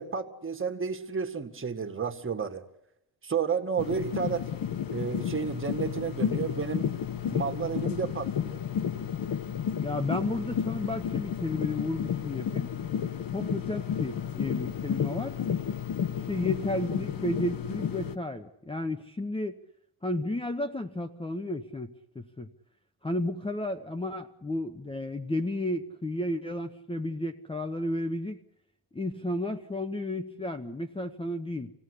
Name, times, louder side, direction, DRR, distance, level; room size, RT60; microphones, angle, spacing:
voice 1, 0.0-2.6 3.2-4.5 4.9-6.9 7.3-8.6, right 6 dB, 30° right, 5 dB, 2.0 m, -31 dB
sound 1, 3.8-18.2, left 8 dB, 50° left, 1.3 m, -32 dB
voice 2, 9.8-12.7 13.3-15.4 16.1-19.6 20.0-22.5 23.0-28.4 28.9-31.7, left 1 dB, 15° left, 9 dB, 0.9 m, -32 dB
26.5 x 17.0 x 8.4 m, 0.81 s
cardioid pair, 100°, 42 cm